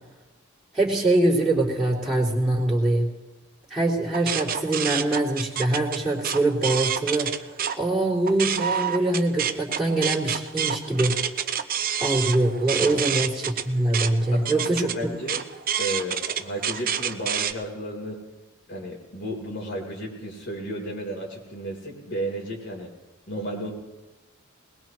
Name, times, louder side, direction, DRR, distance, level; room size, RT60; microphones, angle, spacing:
voice 1, 0.7-3.1 3.7-7.3 7.8-11.1 12.0-14.9, right 2 dB, 5° right, -12 dB, 3.1 m, -23 dB
sound 1, 4.1-7.8 8.1-17.5, right 8 dB, 45° right, 0.7 m, -28 dB
voice 2, 12.9-13.2 14.3-15.4 15.8-18.2 18.7-22.9 23.3-23.7, right 1 dB, 60° left, -1 dB, 3.8 m, -33 dB
21.0 x 20.5 x 3.1 m, 1.1 s
head